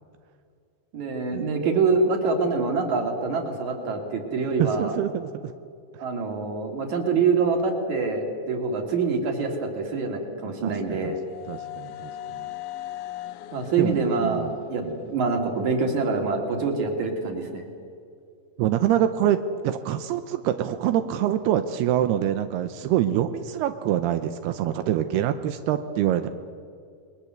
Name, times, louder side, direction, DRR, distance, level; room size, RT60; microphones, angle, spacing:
voice 1, 0.9-5.0 6.0-11.2 13.5-14.8 15.1-17.6, right 4 dB, 50° right, 3 dB, 4.4 m, -25 dB
voice 2, 4.6-5.5 10.4-11.2 11.5-12.5 13.8-14.6 14.8-14.9 18.6-26.3, right 11 dB, 85° right, 9 dB, 2.9 m, -25 dB
sound 1, 10.0-15.9, left 13 dB, 75° left, 2.5 m, -40 dB
30.0 x 22.0 x 8.1 m, 2.3 s
omnidirectional pair, 4.6 m